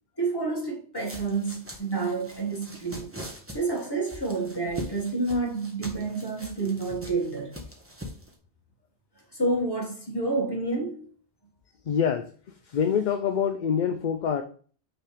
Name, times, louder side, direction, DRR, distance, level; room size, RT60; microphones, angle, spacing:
voice 1, 0.2-3.1 3.5-7.6 9.3-11.1, right 3 dB, 20° left, 1.8 m, -29 dB
sound 1, 0.9-8.3, equal, 15° right, 1.2 m, -42 dB
voice 2, 11.9-12.3 12.7-14.4, left 7 dB, 55° left, 0.6 m, -25 dB
6.0 x 3.5 x 4.9 m
omnidirectional pair, 1.1 m